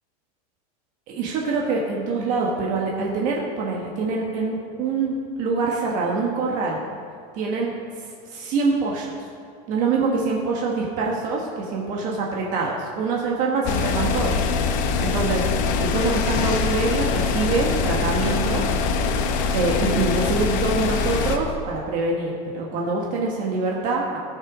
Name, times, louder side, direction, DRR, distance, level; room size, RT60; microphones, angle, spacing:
voice 1, 1.1-6.8 7.3-7.7 8.3-9.1 9.7-14.4 15.0-15.5 15.8-18.6 19.5-24.2, right 3 dB, 40° right, -2 dB, 1.3 m, -25 dB
sound 1, 13.7-21.4, left 5 dB, 40° left, 0.8 m, -23 dB
14.0 x 6.1 x 4.9 m, 2.2 s
supercardioid pair, 155°, 20 cm